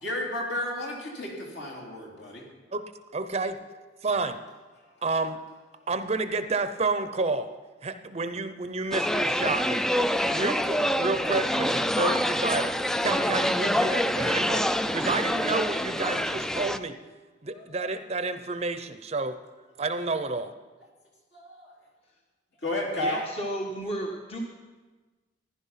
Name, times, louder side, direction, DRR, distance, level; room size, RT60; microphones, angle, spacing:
voice 1, 0.0-2.4 17.5-17.7 19.8-19.9 21.3-21.7 22.6-23.2, left 1 dB, 65° left, -2 dB, 3.5 m, -32 dB
voice 2, 3.1-3.6 4.0-4.4 5.0-5.4 5.9-7.5 7.8-9.8 10.3-12.8 13.0-14.6 14.9-16.9 17.4-19.4 19.8-20.5, right 3 dB, 35° right, 10 dB, 0.7 m, -29 dB
sound 1, 8.9-16.8, equal, 5° left, 0.3 m, -26 dB
voice 3, 23.0-24.4, equal, 35° left, 0 dB, 1.2 m, -33 dB
15.0 x 11.0 x 5.7 m, 1.3 s
head